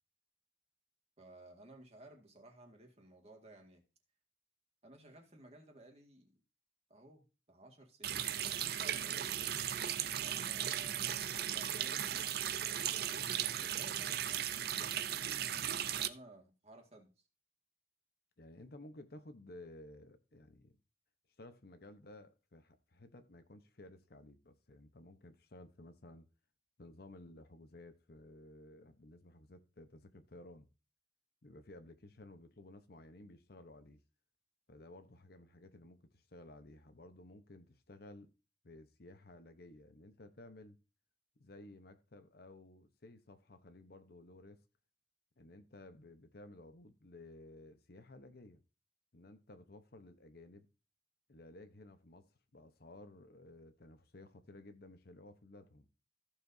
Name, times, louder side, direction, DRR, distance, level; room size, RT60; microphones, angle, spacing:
voice 1, 1.2-3.8 4.8-6.3 6.9-9.4 10.2-15.1 15.7-17.1, right 1 dB, 35° right, 1.9 m, -57 dB
Water tap faucet, 8.0-16.1, right 10 dB, 55° right, 0.6 m, -37 dB
voice 2, 18.4-20.8 21.4-26.3 26.8-30.7 31.4-34.0 34.7-38.3 38.6-40.8 41.4-44.6 45.4-48.6 49.1-50.7 51.3-55.8, left 1 dB, 55° left, 0.9 m, -55 dB
14.5 x 6.9 x 2.7 m
head